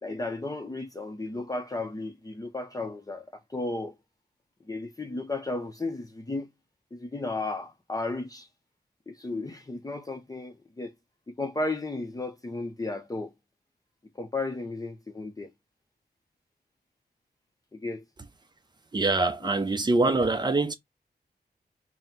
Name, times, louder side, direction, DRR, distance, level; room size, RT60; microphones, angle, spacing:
voice 1, 0.0-3.9 4.7-6.5 6.9-8.5 9.1-10.9 11.3-13.3 14.2-15.5 17.7-18.0, left 2 dB, 20° left, 0.7 m, -34 dB
voice 2, 18.9-20.7, right 2 dB, 25° right, 0.6 m, -24 dB
4.3 x 2.2 x 3.7 m
wide cardioid pair, 120°, 17 cm